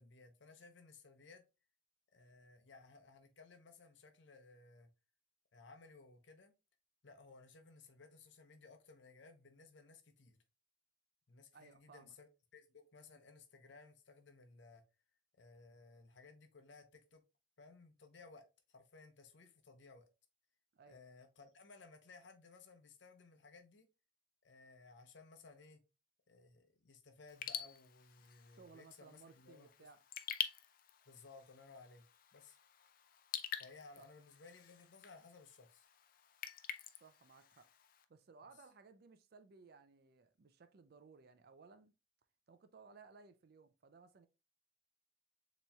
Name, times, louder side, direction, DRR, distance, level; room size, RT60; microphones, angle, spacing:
voice 1, 0.0-1.4 2.1-4.9 5.5-6.5 7.0-10.4 11.3-14.8 15.3-17.2 17.6-20.1 20.9-23.9 24.4-25.8 26.3-29.9 31.1-32.1 32.3-32.6 33.6-35.9 38.4-38.5, left 4 dB, 70° left, 0.8 m, -59 dB
voice 2, 11.5-12.1 20.7-21.0 28.5-30.0 34.0-34.1 37.0-37.7 38.1-41.9 42.5-44.3, right 4 dB, 55° right, 0.4 m, -61 dB
Raindrop / Drip, 27.3-38.0, left 9 dB, 45° left, 0.4 m, -48 dB
6.9 x 3.0 x 2.3 m
head